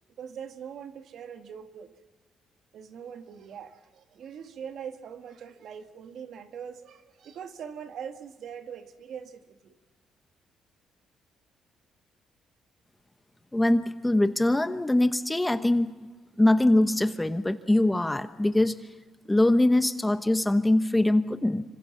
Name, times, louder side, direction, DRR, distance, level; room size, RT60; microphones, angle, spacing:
voice 1, 0.2-1.9 2.7-9.8, right 7 dB, 70° right, 8 dB, 1.7 m, -42 dB
voice 2, 13.5-16.1 16.4-18.8 19.3-21.6, left 1 dB, 10° left, 10 dB, 1.0 m, -23 dB
26.0 x 25.0 x 5.9 m, 1.4 s
cardioid pair, 90°, 0 cm